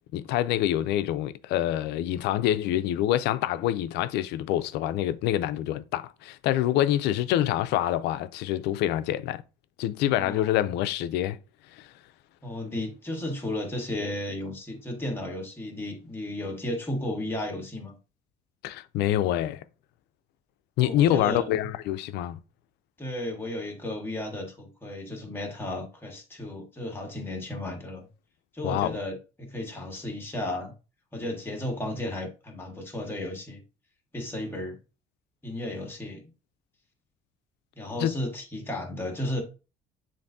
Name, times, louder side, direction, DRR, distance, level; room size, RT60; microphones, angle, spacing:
voice 1, 0.1-9.4 9.8-11.4 11.8-11.9 18.6-19.6 20.8-22.4 28.6-29.0 38.0-38.1, left 12 dB, 85° left, 0.4 m, -26 dB
voice 2, 10.0-10.7 12.4-17.9 20.8-21.7 23.0-28.1 28.5-30.7 31.1-33.6 34.1-34.8 35.4-36.2 37.7-39.4, left 1 dB, 15° left, 1.5 m, -34 dB
7.0 x 2.6 x 2.6 m
cardioid pair, 110°, 17 cm